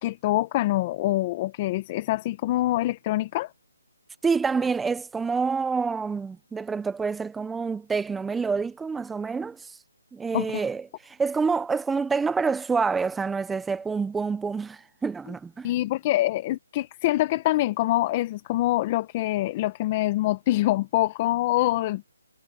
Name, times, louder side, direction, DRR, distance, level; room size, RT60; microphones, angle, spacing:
voice 1, 0.0-3.5 10.3-10.6 15.6-22.0, left 16 dB, 25° left, 1.1 m, -25 dB
voice 2, 4.2-9.8 10.1-15.7, right 5 dB, 5° right, 0.9 m, -27 dB
hypercardioid pair, 160°, 0 cm